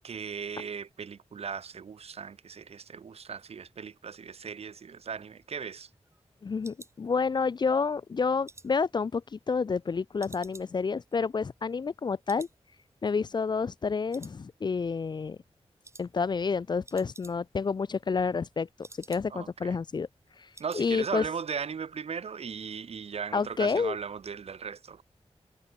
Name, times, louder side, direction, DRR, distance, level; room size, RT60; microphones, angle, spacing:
voice 1, 0.0-5.9 19.3-19.8 20.6-25.0, right 6 dB, 65° right, 0.6 m, -37 dB
sound 1, 4.9-7.7 8.1-9.8 10.2-12.0 12.3-12.6 12.9-13.0 13.4-13.9 14.1-14.9 15.2-15.5 15.8-16.1 16.4-16.5 16.7-17.7 18.0-19.6 19.9-20.0 20.3-20.9 21.2-21.4 21.7-21.8, right 2 dB, 25° right, 2.0 m, -53 dB
voice 2, 6.4-12.5 13.0-15.4 16.0-18.7 19.1-20.1 20.7-21.3 23.3-24.0, left 5 dB, 40° left, 0.3 m, -29 dB
wide cardioid pair, 110°, 11 cm